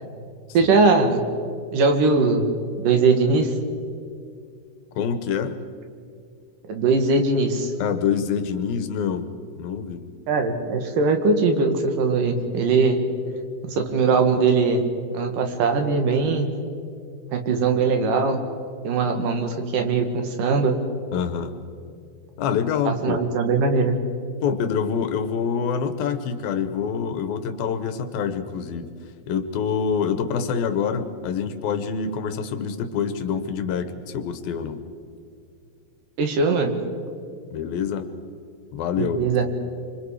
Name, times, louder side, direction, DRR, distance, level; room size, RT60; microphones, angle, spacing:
voice 1, 0.5-1.2 1.7-2.5 2.8-3.5 6.7-7.7 10.3-13.0 13.6-14.8 15.1-16.5 17.3-18.4 18.8-20.7 22.8-23.9 36.2-36.7 39.0-39.4, right 4 dB, 70° right, 5 dB, 3.3 m, -20 dB
voice 2, 5.0-5.6 7.8-9.3 9.6-10.1 21.1-21.6 22.4-23.2 24.4-28.9 29.3-34.8 37.5-38.1 38.7-39.6, left 7 dB, 90° left, 9 dB, 3.1 m, -26 dB
26.5 x 26.0 x 4.9 m, 2.4 s
omnidirectional pair, 4.1 m